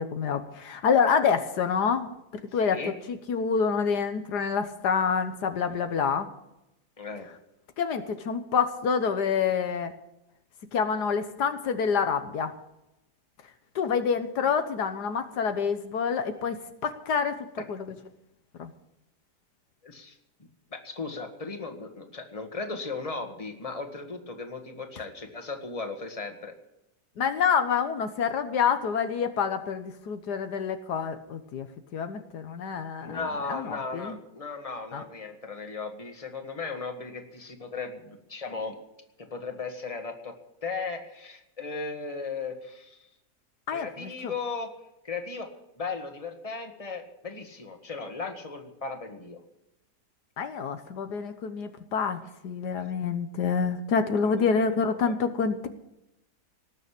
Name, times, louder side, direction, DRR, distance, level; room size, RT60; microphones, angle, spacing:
voice 1, 0.0-2.1 2.5-2.8 3.1-6.3 7.8-9.9 10.7-12.5 13.8-17.8 18.6-18.7 27.2-31.7 31.9-34.2 34.9-35.0 43.7-44.3 50.4-55.7, left 6 dB, 80° left, 8 dB, 1.6 m, -27 dB
voice 2, 2.6-2.9 7.0-7.3 14.4-14.5 19.8-20.2 20.7-26.5 33.0-38.7 39.2-40.4 40.6-43.0 43.7-44.7 45.0-45.5 45.8-49.4 54.2-54.3, left 4 dB, 20° left, 4 dB, 1.8 m, -36 dB
19.0 x 6.9 x 9.9 m, 0.89 s
omnidirectional pair, 1.7 m